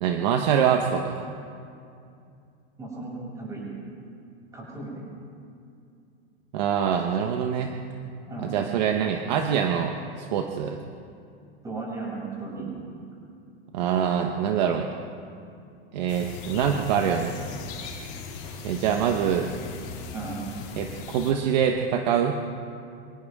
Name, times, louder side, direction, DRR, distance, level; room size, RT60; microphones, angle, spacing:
voice 1, 0.0-1.3 6.5-7.7 8.4-10.8 13.7-14.9 15.9-17.4 18.6-19.5 20.8-22.4, right 8 dB, 45° right, 3 dB, 1.2 m, -24 dB
voice 2, 2.8-3.7 4.5-5.1 8.3-8.6 11.6-12.7 13.2-13.3 20.1-20.4, right 3 dB, 10° right, -6 dB, 7.3 m, -35 dB
sound 1, 16.1-21.3, left 5 dB, 40° left, 3.7 m, -39 dB
28.0 x 26.0 x 3.7 m, 2.5 s
supercardioid pair, 175°, 31 cm